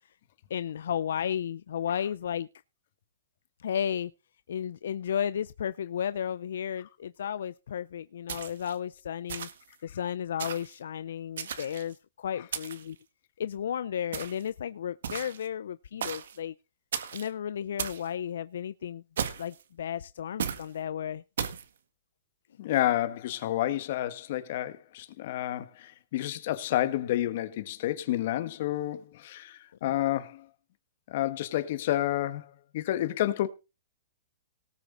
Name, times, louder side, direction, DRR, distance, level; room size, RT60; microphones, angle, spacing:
voice 1, 0.5-2.5 3.6-4.1 4.5-9.5 9.8-13.0 13.4-16.5 17.1-19.0 19.4-21.2 29.9-30.0, left 9 dB, 75° left, 0.5 m, -33 dB
sound 1, 8.3-8.8 9.3-9.7 10.4-10.7 11.4-11.9 12.5-12.9 14.1-14.5 15.0-15.5 16.0-16.4 16.9-17.3 17.8-18.1 19.2-19.6 20.4-20.7 21.4-21.7, right 8 dB, 75° right, 1.6 m, -35 dB
voice 2, 22.6-30.4 31.1-33.5, left 14 dB, 45° left, 1.4 m, -30 dB
18.5 x 7.1 x 3.8 m
hypercardioid pair, 165°, 0 cm